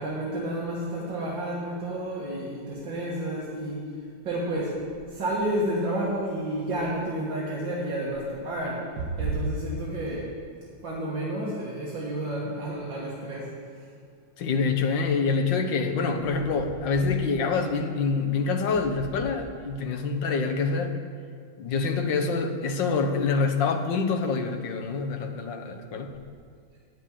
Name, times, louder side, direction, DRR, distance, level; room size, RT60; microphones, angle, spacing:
voice 1, 0.0-10.3 10.8-13.9, right 1 dB, 70° right, -6 dB, 2.4 m, -30 dB
voice 2, 14.4-21.0 21.6-26.1, left 4 dB, 70° left, 5 dB, 1.6 m, -26 dB
9.9 x 7.7 x 8.8 m, 2.2 s
omnidirectional pair, 2.1 m